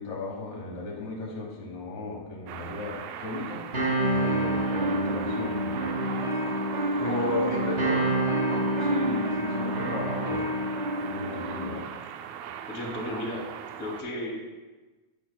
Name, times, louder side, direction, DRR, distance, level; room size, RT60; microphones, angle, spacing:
voice 1, 0.0-3.6 4.1-6.0 7.0-8.0 8.5-10.5 11.1-11.9, left 2 dB, 70° left, -1 dB, 2.6 m, -35 dB
sound 1, 2.5-14.0, right 9 dB, 80° right, 1.7 m, -39 dB
sound 2, 3.7-11.8, right 1 dB, 25° right, 1.8 m, -28 dB
voice 2, 7.0-7.7 12.7-13.4 13.8-14.6, left 1 dB, 5° left, -5 dB, 1.6 m, -34 dB
18.0 x 6.1 x 2.2 m, 1.2 s
omnidirectional pair, 3.5 m